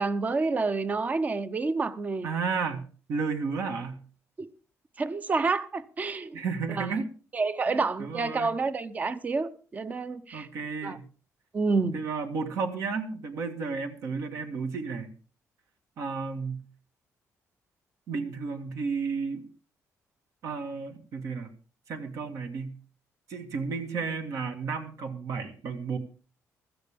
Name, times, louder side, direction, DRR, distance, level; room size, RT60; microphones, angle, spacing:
voice 1, 0.0-2.3 4.4-4.5 5.0-6.4 6.7-6.9 7.3-10.5 10.8-11.0 11.5-12.0, right 4 dB, 25° right, 0.8 m, -28 dB
voice 2, 2.2-4.0 6.3-7.1 7.7-8.5 10.3-11.1 11.9-15.1 16.0-16.6 18.1-19.4 20.4-21.5 21.9-22.8 23.3-26.0, right 5 dB, 65° right, 1.8 m, -32 dB
16.0 x 14.0 x 3.6 m
cardioid pair, 145°, 6 cm